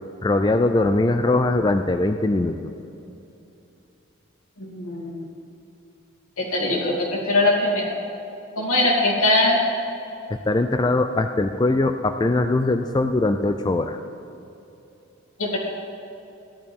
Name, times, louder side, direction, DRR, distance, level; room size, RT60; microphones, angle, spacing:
voice 1, 0.2-2.6 10.3-14.0, left 2 dB, 20° left, 7 dB, 0.3 m, -21 dB
voice 2, 4.6-5.2 6.4-7.9 8.6-9.6 15.4-15.6, left 2 dB, 80° left, -3 dB, 2.6 m, -21 dB
15.5 x 11.0 x 3.6 m, 2.8 s
head